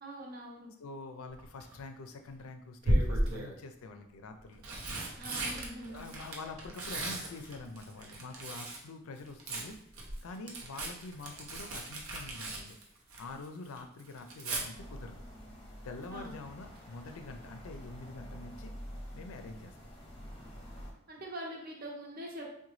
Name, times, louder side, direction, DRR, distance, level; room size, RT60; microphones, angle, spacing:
voice 1, 0.0-0.7 5.2-6.1 16.1-16.3 21.1-22.5, right 1 dB, 45° right, -1 dB, 0.7 m, -43 dB
voice 2, 0.8-4.6 5.9-9.8 10.2-12.8 13.2-15.3 15.8-18.7 19.1-19.7, left 3 dB, 85° left, 6 dB, 0.4 m, -46 dB
Tearing, 1.3-1.8 2.8-3.6 4.4-8.9 9.2-13.5 13.8-14.6 16.5-16.8 17.1-17.2, right 1 dB, 90° right, 0.7 m, -35 dB
sound 1, 14.7-20.9, equal, 25° left, 0.7 m, -47 dB
3.8 x 2.2 x 3.0 m, 0.71 s
head